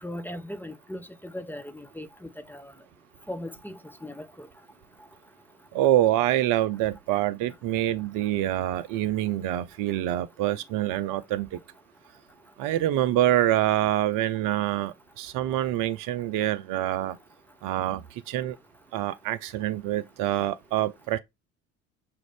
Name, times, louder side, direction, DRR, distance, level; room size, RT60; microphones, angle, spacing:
voice 1, 0.0-2.7 3.3-4.5, left 1 dB, 5° left, 0.6 m, -38 dB
voice 2, 5.7-11.6 12.6-17.2 17.6-18.0 18.3-18.6 18.9-21.2, right 13 dB, 55° right, 0.6 m, -26 dB
6.7 x 2.5 x 3.2 m
hypercardioid pair, 60°, 39 cm